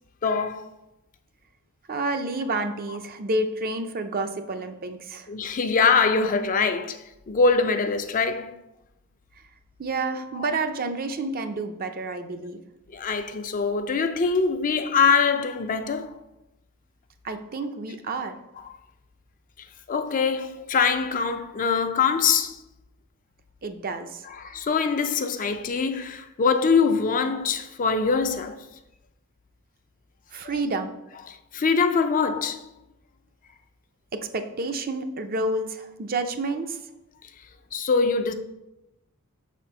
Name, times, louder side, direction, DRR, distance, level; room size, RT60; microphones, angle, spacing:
voice 1, 0.2-0.7 5.3-7.0 7.3-8.6 12.9-16.2 19.9-22.6 24.4-28.6 31.3-32.6 37.7-38.3, left 5 dB, 35° left, 0.4 m, -23 dB
voice 2, 1.9-5.3 9.8-12.6 17.2-18.4 23.6-24.2 30.3-31.0 34.1-36.8, right 2 dB, 40° right, 0.5 m, -29 dB
6.1 x 4.3 x 5.0 m
head